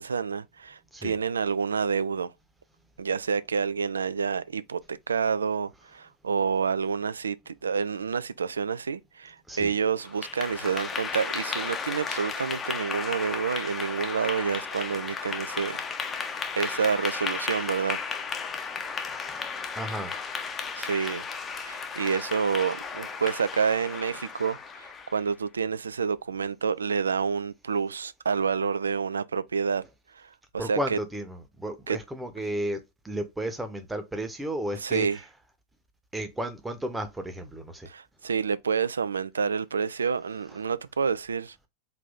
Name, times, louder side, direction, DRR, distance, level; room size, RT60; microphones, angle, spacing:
voice 1, 0.0-2.3 3.0-15.8 16.1-16.2 16.6-18.0 20.8-21.3 21.6-29.8 30.1-31.0 31.9-32.0 34.8-35.2 37.9-41.7, right 6 dB, 70° right, 0.3 m, -28 dB
Clapping / Applause, 10.0-25.3, left 5 dB, 20° left, 0.6 m, -34 dB
voice 2, 19.7-20.1 30.6-35.1 36.1-37.9, right 1 dB, 10° right, 0.9 m, -33 dB
3.9 x 2.7 x 3.4 m
figure-of-eight pair, 90°, 0 cm